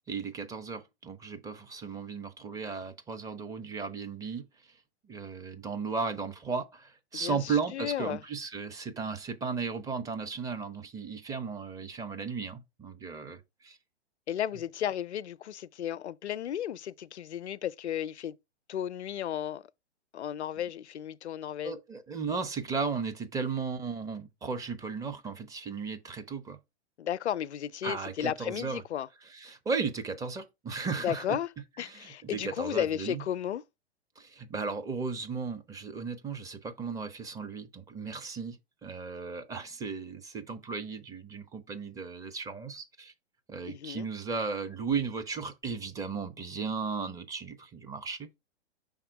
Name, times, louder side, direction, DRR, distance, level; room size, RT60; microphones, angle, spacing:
voice 1, 0.1-4.4 5.0-13.8 21.6-26.6 27.8-28.8 29.3-31.4 31.8-33.2 34.2-43.1 43.5-48.3, right 5 dB, 10° right, 0.5 m, -35 dB
voice 2, 7.1-8.2 14.3-18.3 18.7-19.7 20.1-21.8 27.0-29.1 31.0-31.5 31.8-33.6 43.7-44.1, left 10 dB, 80° left, 0.5 m, -34 dB
5.8 x 3.6 x 4.5 m
hypercardioid pair, 115°, 33 cm